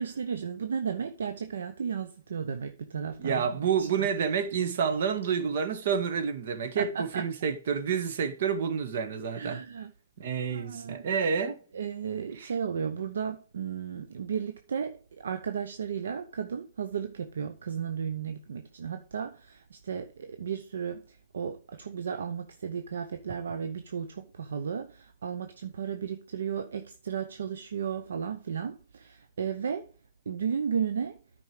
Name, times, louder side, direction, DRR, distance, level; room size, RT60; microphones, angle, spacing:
voice 1, 0.0-3.5 3.8-4.1 6.8-7.2 9.3-9.9 10.5-11.1 11.7-29.9 30.3-31.2, right 7 dB, 75° right, 0.8 m, -34 dB
voice 2, 3.2-9.6 10.2-11.6 12.4-12.5, right 6 dB, 60° right, 1.6 m, -29 dB
9.5 x 5.3 x 5.0 m
hypercardioid pair, 130°, 0 cm